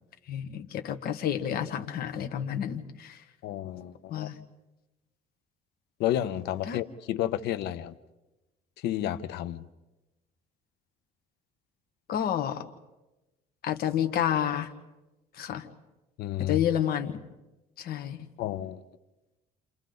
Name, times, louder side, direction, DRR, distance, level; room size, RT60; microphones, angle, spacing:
voice 1, 0.3-3.2 4.1-4.4 6.7-6.8 12.1-12.6 13.6-14.7 15.4-15.7 16.4-17.2 17.8-18.3, left 10 dB, 65° left, 6 dB, 1.8 m, -30 dB
voice 2, 3.4-4.3 6.0-7.9 8.8-9.7 16.2-16.6 18.4-18.8, left 12 dB, 80° left, 12 dB, 1.0 m, -31 dB
29.5 x 28.5 x 4.0 m, 1.1 s
cardioid pair, 110°, 17 cm